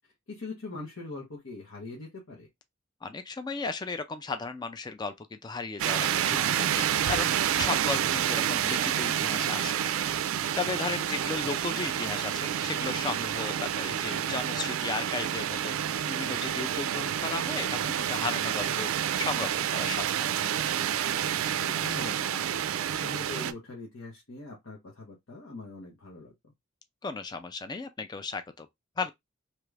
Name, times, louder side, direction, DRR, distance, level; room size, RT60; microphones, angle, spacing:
voice 1, 0.3-2.5 7.8-8.1 21.6-26.5, left 2 dB, 80° left, 1.0 m, -42 dB
voice 2, 3.0-9.9 10.5-18.9 19.2-20.3 27.0-28.7 29.0-29.1, left 4 dB, 20° left, 0.3 m, -35 dB
sound 1, 5.8-23.5, right 10 dB, 85° right, 0.3 m, -29 dB
3.0 x 2.4 x 3.2 m
head